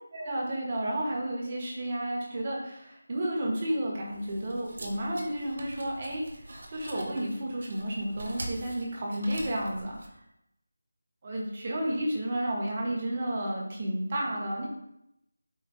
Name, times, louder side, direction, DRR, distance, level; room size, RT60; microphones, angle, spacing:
voice 1, 0.1-6.2 6.7-10.0 11.2-14.7, right 1 dB, 35° right, -2 dB, 1.2 m, -31 dB
sound 1, 4.1-10.1, right 1 dB, 55° right, 0.9 m, -44 dB
5.5 x 3.0 x 3.1 m, 0.83 s
figure-of-eight pair, 170°, 0 cm